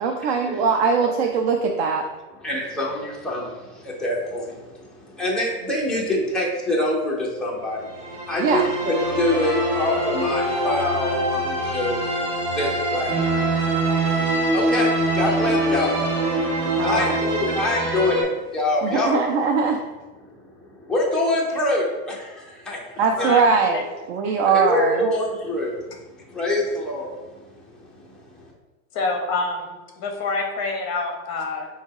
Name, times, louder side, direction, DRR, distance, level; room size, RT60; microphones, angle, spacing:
voice 1, 0.0-2.1 8.4-8.6 16.8-17.1 18.8-19.8 23.0-25.1, right 5 dB, 45° right, 3 dB, 0.4 m, -21 dB
voice 2, 2.4-14.0 14.4-19.4 20.3-22.8 23.2-23.3 24.4-25.8 26.2-28.5, left 1 dB, ahead, -5 dB, 0.6 m, -26 dB
sound 1, 7.8-18.2, right 1 dB, 25° right, 1.5 m, -24 dB
voice 3, 28.9-31.7, left 3 dB, 35° left, 2 dB, 1.0 m, -26 dB
3.9 x 2.7 x 4.7 m, 1.2 s
supercardioid pair, 140°, 45 cm